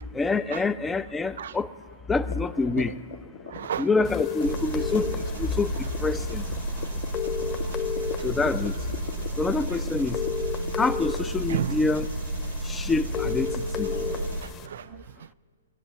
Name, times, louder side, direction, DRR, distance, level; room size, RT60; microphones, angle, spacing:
voice 1, 0.1-1.7 2.1-3.0 3.8-5.1 5.4-6.4 8.2-8.8 9.4-10.2 10.8-12.0 12.6-13.9, left 3 dB, 10° left, 0.4 m, -26 dB
sound 1, 2.2-13.5 13.8-14.4, left 7 dB, 60° left, 1.2 m, -43 dB
voice 2, 3.5-3.9 7.7-7.8 8.2-8.3 11.5-11.8 14.1-15.3, right 9 dB, 65° right, 0.3 m, -33 dB
sound 2, 4.0-14.7, left 7 dB, 25° left, 1.0 m, -34 dB
Engine, 4.4-14.4, right 2 dB, 85° right, 0.7 m, -32 dB
20.0 x 8.1 x 7.5 m
hypercardioid pair, 140°, 0 cm